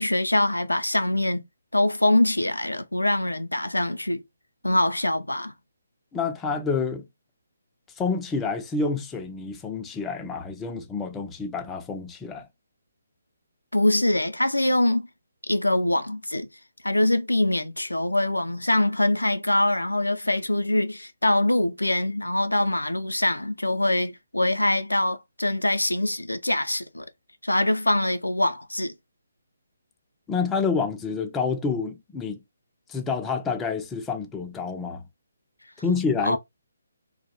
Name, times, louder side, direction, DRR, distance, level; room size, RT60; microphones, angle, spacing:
voice 1, 0.0-1.4 1.7-4.2 4.6-5.5 13.7-15.1 15.5-16.5 16.8-27.0 27.4-28.9 36.2-36.4, left 1 dB, 85° left, 0.3 m, -23 dB
voice 2, 6.1-7.0 8.0-12.5 30.3-32.4 32.9-35.0 35.8-36.4, left 5 dB, 10° left, 0.3 m, -28 dB
2.2 x 2.0 x 2.8 m
figure-of-eight pair, 140°, 0 cm